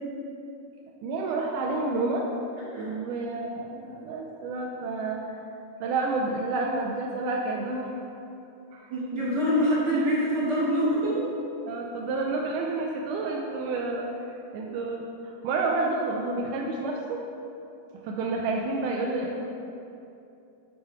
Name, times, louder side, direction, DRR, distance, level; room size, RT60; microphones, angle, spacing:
voice 1, 1.0-2.2 2.8-5.2 5.8-8.0 8.7-8.9 9.5-9.6 11.7-14.3 14.5-17.2 18.0-19.5, right 3 dB, 85° right, 0 dB, 2.0 m, -29 dB
voice 2, 8.9-11.3, equal, 45° right, -10 dB, 1.5 m, -25 dB
9.1 x 3.1 x 4.6 m, 2.7 s
omnidirectional pair, 3.6 m